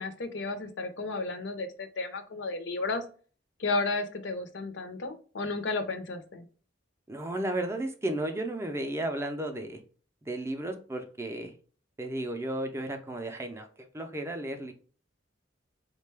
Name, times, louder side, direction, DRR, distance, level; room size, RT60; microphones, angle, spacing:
voice 1, 0.0-3.0 3.6-6.4, left 3 dB, 65° left, 8 dB, 0.5 m, -33 dB
voice 2, 7.1-9.8 10.2-11.5 12.0-13.7 13.9-14.7, right 1 dB, 15° right, 5 dB, 0.4 m, -33 dB
3.6 x 2.2 x 3.2 m, 0.41 s
head